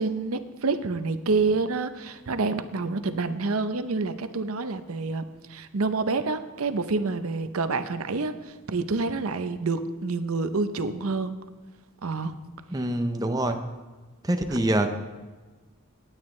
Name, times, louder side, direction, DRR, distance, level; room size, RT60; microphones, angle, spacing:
voice 1, 0.0-5.2 5.5-8.3 8.7-11.4 12.0-12.3, right 3 dB, 75° right, 10 dB, 0.7 m, -27 dB
voice 2, 12.7-13.6 14.3-15.0, right 1 dB, 15° right, 6 dB, 0.6 m, -25 dB
18.5 x 9.0 x 3.2 m, 1.3 s
head